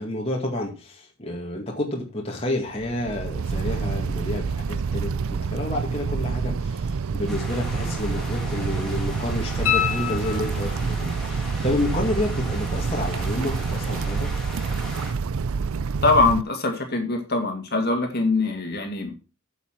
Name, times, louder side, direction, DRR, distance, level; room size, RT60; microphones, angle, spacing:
voice 1, 0.0-14.3, left 1 dB, 25° left, -1 dB, 2.1 m, -30 dB
sound 1, 2.7-16.4, right 5 dB, 75° right, 0.5 m, -27 dB
sound 2, 7.3-15.1, left 1 dB, ahead, 2.7 m, -38 dB
sound 3, 9.7-11.0 13.8-13.9, left 10 dB, 80° left, 1.7 m, -26 dB
voice 2, 16.0-19.1, left 3 dB, 45° left, 4 dB, 2.2 m, -22 dB
8.2 x 7.3 x 5.9 m, 0.32 s
head